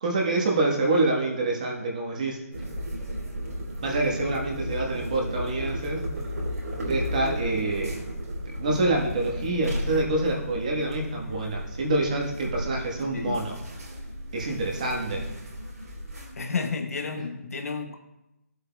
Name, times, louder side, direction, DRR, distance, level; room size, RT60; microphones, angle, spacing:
voice 1, 0.0-2.4 3.8-6.0 6.8-8.0 8.4-13.5 14.3-15.2, right 2 dB, 30° right, 1.3 m, -26 dB
sound 1, 2.5-16.3, equal, 85° right, 3.5 m, -34 dB
voice 2, 16.4-18.0, left 4 dB, 65° left, 1.0 m, -31 dB
14.5 x 8.0 x 2.3 m
hypercardioid pair, 180°, 9 cm